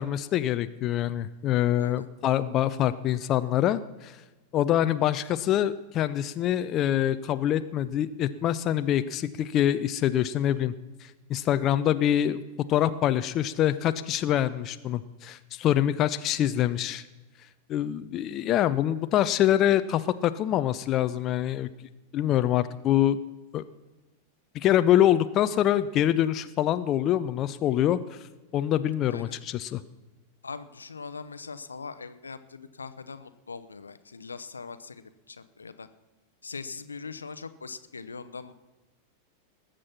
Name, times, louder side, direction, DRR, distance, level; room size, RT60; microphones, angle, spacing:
voice 1, 0.0-4.2 4.5-10.7 11.0-12.4 12.7-17.0 17.7-21.7 22.1-23.2 23.5-23.6 24.5-28.0 28.5-29.8, left 11 dB, 35° left, 12 dB, 0.5 m, -25 dB
voice 2, 1.8-2.1 29.1-29.4 30.4-35.9 36.4-38.5, left 4 dB, 75° left, 12 dB, 0.7 m, -41 dB
20.0 x 7.6 x 5.8 m, 1.2 s
figure-of-eight pair, 90°, 0 cm